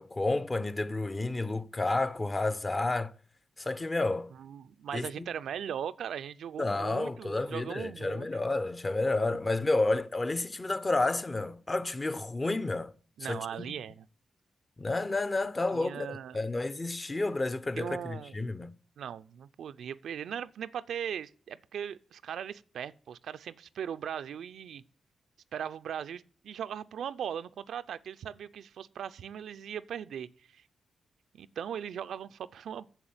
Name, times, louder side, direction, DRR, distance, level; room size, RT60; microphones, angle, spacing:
voice 1, 0.0-3.1 3.6-4.3 4.9-5.3 6.6-12.9 13.3-13.7 14.8-18.7, left 2 dB, 25° left, 0.8 m, -30 dB
voice 2, 4.3-8.3 13.2-14.1 15.7-16.4 17.8-18.4 19.0-24.8 25.5-30.6 31.3-32.9, right 8 dB, 85° right, 0.5 m, -39 dB
9.0 x 7.0 x 8.8 m
cardioid pair, 70°, 0 cm